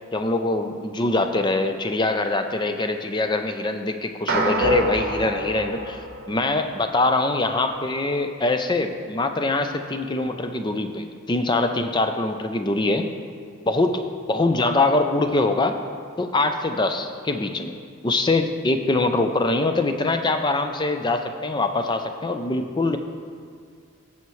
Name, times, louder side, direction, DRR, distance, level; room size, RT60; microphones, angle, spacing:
voice 1, 0.1-6.0 6.3-13.1 13.7-14.0 14.3-15.8 16.2-17.8 18.0-23.0, left 2 dB, 20° left, 6 dB, 0.4 m, -23 dB
sound 1, 4.3-6.8, right 1 dB, 45° right, 0.9 m, -26 dB
16.5 x 5.7 x 3.1 m, 2.2 s
head